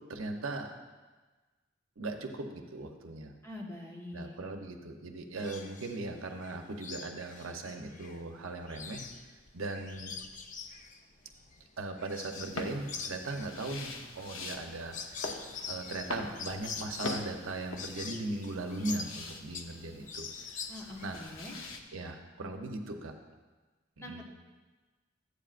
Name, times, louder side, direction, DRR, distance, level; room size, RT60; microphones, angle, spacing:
voice 1, 0.1-0.7 2.0-3.3 4.1-10.2 11.8-20.6 21.0-21.2 21.9-23.1 24.0-24.2, right 2 dB, 90° right, 4 dB, 0.8 m, -39 dB
voice 2, 3.4-4.4 20.7-21.5 24.0-24.3, left 1 dB, 15° left, -3 dB, 1.3 m, -44 dB
sound 1, 5.4-6.0 6.4-8.2 8.5-12.6 12.9-19.8 20.1-21.1, left 5 dB, 40° left, 0.6 m, -44 dB
sound 2, 12.3-21.8, left 2 dB, 85° left, 0.8 m, -44 dB
12.5 x 8.4 x 2.5 m, 1.3 s
head